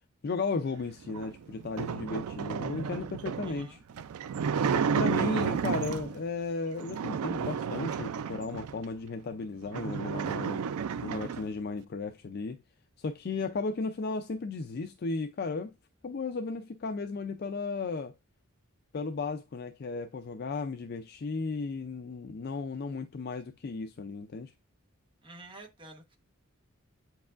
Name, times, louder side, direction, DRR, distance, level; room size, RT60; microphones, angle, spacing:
voice 1, 0.2-3.8 4.7-10.6 11.0-12.6 13.0-15.7 16.0-18.1 18.9-24.5, left 4 dB, 45° left, 0.4 m, -35 dB
sound 1, 1.0-6.2 6.8-8.8 9.3-9.4 9.6-11.5, right 7 dB, 90° right, 0.4 m, -32 dB
voice 2, 3.4-3.8 5.3-5.5 25.2-26.2, right 2 dB, 25° right, 1.0 m, -49 dB
8.2 x 4.7 x 2.4 m
head